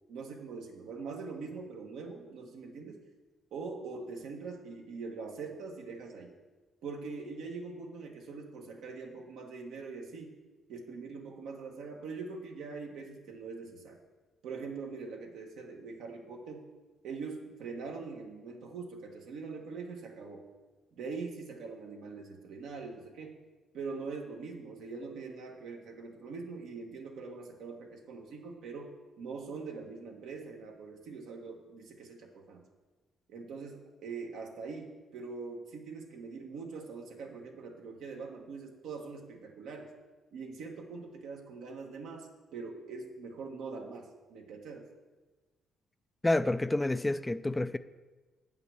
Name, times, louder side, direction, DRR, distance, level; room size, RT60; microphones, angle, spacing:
voice 1, 0.1-3.0 3.5-6.3 6.8-10.4 10.7-14.0 14.4-16.7 17.0-20.4 20.9-23.4 23.7-32.6 33.3-39.9 40.3-44.9, right 4 dB, 85° right, 1.5 m, -43 dB
voice 2, 46.2-47.8, left 2 dB, 15° left, 0.3 m, -28 dB
8.2 x 5.6 x 7.9 m
cardioid pair, 90°, 0 cm